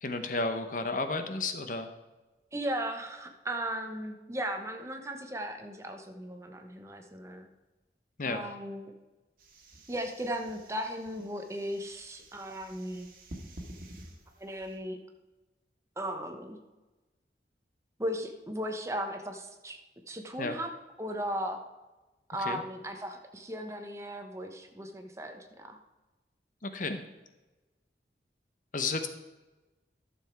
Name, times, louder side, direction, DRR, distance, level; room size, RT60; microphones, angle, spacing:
voice 1, 0.0-1.9 8.2-8.5 20.4-20.6 22.4-22.6 26.6-27.0 28.7-29.1, left 3 dB, 50° left, 8 dB, 0.8 m, -32 dB
voice 2, 2.5-7.5 8.2-8.9 9.9-13.1 14.4-15.0 16.0-16.6 18.0-19.8 20.1-20.7 21.0-21.6 22.3-25.8, equal, 15° right, 5 dB, 1.0 m, -36 dB
sound 1, 9.4-14.8, right 1 dB, 55° right, 1.8 m, -50 dB
12.0 x 7.0 x 4.6 m, 1.1 s
head